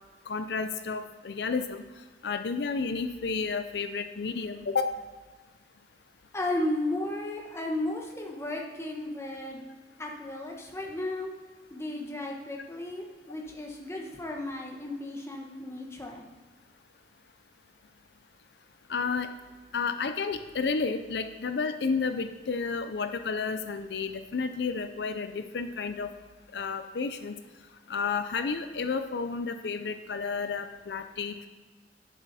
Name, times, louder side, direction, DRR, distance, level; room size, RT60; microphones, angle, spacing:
voice 1, 0.3-1.8 2.2-4.9 18.9-19.3 19.7-26.1 26.5-27.4 27.9-31.5, left 4 dB, 70° left, 8 dB, 0.5 m, -31 dB
voice 2, 6.3-16.3, left 1 dB, 15° left, 0 dB, 1.2 m, -34 dB
11.0 x 7.2 x 4.2 m, 1.3 s
head